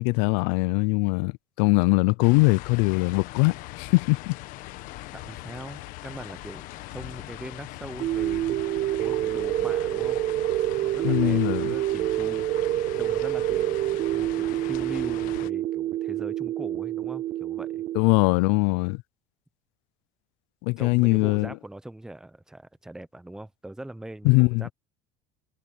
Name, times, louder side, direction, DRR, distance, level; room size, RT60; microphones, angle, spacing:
voice 1, 0.0-4.4 11.0-11.7 17.9-19.0 20.6-21.5 24.2-24.7, left 27 dB, 75° left, 0.5 m, -22 dB
sound 1, 2.2-15.5, left 18 dB, 60° left, 1.2 m, -41 dB
voice 2, 5.1-8.5 9.0-10.2 10.8-12.4 12.9-17.8 20.8-24.7, right 1 dB, 5° right, 0.8 m, -41 dB
sound 2, 8.0-18.0, right 14 dB, 40° right, 0.4 m, -27 dB
cardioid pair, 140°, 16 cm